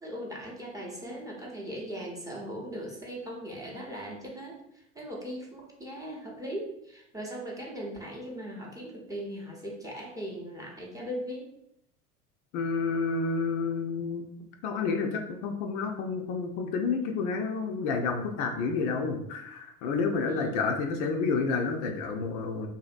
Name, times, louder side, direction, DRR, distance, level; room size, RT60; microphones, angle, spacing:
voice 1, 0.0-11.5 20.3-20.7, equal, 10° right, -3 dB, 0.7 m, -39 dB
voice 2, 12.5-14.3 14.6-22.7, left 4 dB, 60° left, 3 dB, 0.5 m, -30 dB
2.7 x 2.6 x 2.5 m, 0.78 s
hypercardioid pair, 80°, 41 cm